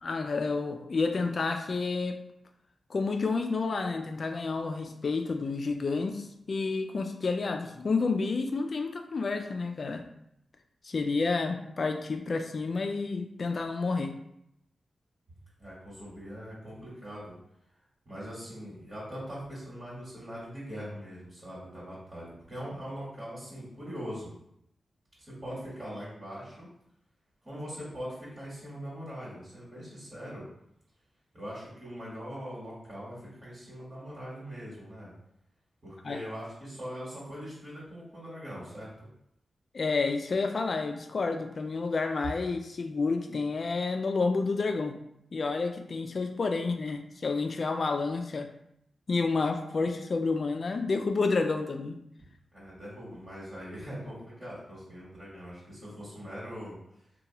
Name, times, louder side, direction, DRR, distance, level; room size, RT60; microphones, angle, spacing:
voice 1, 0.0-2.2 2.9-10.0 10.8-14.1 36.0-36.2 39.7-45.0 45.3-48.5 49.1-52.0, left 4 dB, 60° left, 6 dB, 0.3 m, -30 dB
voice 2, 15.6-17.3 18.0-24.3 25.3-26.7 27.4-30.5 31.3-35.1 35.8-38.9 52.5-56.8, equal, 40° right, -8 dB, 1.3 m, -41 dB
2.9 x 2.2 x 2.8 m, 0.77 s
cardioid pair, 65°, 0 cm